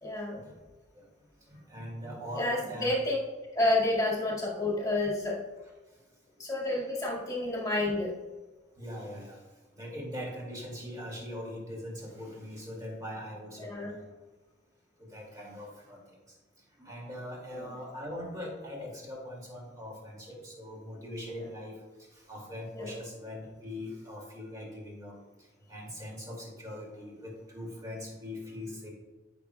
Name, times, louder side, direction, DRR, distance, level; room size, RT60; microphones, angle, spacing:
voice 1, 0.0-0.4 2.3-3.2 3.5-5.4 6.4-8.1 13.6-14.0 17.5-17.8 21.4-21.6 22.7-23.0, left 2 dB, 20° left, -5 dB, 2.0 m, -30 dB
voice 2, 1.5-2.9 8.8-9.4 9.7-14.1 15.0-16.0 16.8-21.7 22.1-25.1 25.7-28.9, left 1 dB, 20° right, -3 dB, 2.4 m, -41 dB
14.0 x 6.1 x 2.3 m, 1.2 s
head